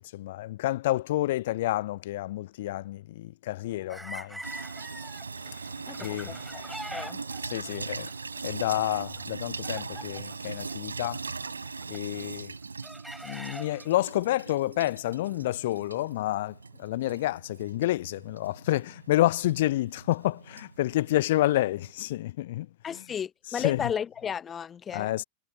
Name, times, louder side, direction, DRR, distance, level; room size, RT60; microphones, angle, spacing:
voice 1, 0.1-4.4 6.0-6.3 7.4-8.1 8.4-11.2 11.9-12.5 13.2-22.7 22.9-23.0 23.5-23.9 24.9-25.2, left 15 dB, 55° left, 0.4 m, -29 dB
sound 1, 3.6-12.3 12.8-13.9, right 1 dB, 5° right, 5.6 m, -45 dB
Water tap faucet / Sink (filling or washing), 4.4-21.9, right 4 dB, 75° right, 7.8 m, -40 dB
voice 2, 5.9-6.7 6.9-7.2 22.8-25.2, left 8 dB, 20° left, 0.7 m, -34 dB
figure-of-eight pair, 90°, 0 cm